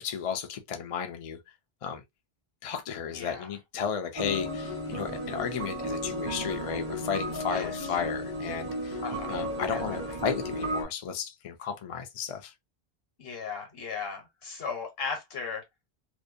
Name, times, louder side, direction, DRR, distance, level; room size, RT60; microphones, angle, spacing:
voice 1, 0.0-1.4 1.8-2.0 2.6-9.0 9.3-12.5, left 7 dB, 50° left, 0.4 m, -34 dB
voice 2, 3.1-3.6 7.5-7.8 9.0-9.4 9.7-10.2 13.2-15.6, left 5 dB, 70° left, 1.2 m, -37 dB
sound 1, 4.2-10.8, equal, 15° right, 0.5 m, -34 dB
2.6 x 2.1 x 2.5 m
omnidirectional pair, 1.0 m